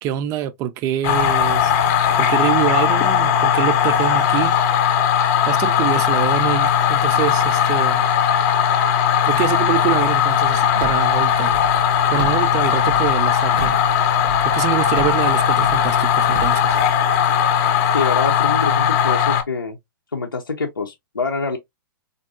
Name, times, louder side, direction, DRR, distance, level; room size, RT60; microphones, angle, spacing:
voice 1, 0.0-1.7 2.2-4.6 5.5-8.1 9.2-11.5 12.1-13.8 14.4-16.8, right 11 dB, 25° right, 0.3 m, -25 dB
sound 1, 1.0-19.4, left 8 dB, 40° left, 0.6 m, -18 dB
Car, 10.4-16.8, right 6 dB, 80° right, 0.7 m, -34 dB
voice 2, 17.9-19.8 20.1-21.6, left 4 dB, 90° left, 0.6 m, -25 dB
3.7 x 2.6 x 2.4 m
figure-of-eight pair, 110°, 11 cm